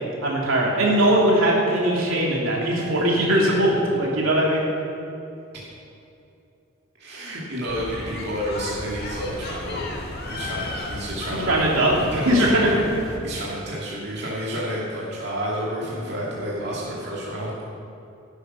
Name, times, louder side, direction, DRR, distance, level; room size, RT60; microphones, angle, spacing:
voice 1, 0.2-4.6 11.5-11.9 12.2-12.7, right 1 dB, 80° right, -4 dB, 3.0 m, -20 dB
voice 2, 7.0-9.9 10.3-11.7 12.0-12.8 13.2-17.5, equal, 55° right, -6 dB, 2.4 m, -30 dB
sound 1, 7.7-13.2, left 2 dB, 50° left, 1.7 m, -34 dB
16.5 x 8.3 x 5.8 m, 2.6 s
head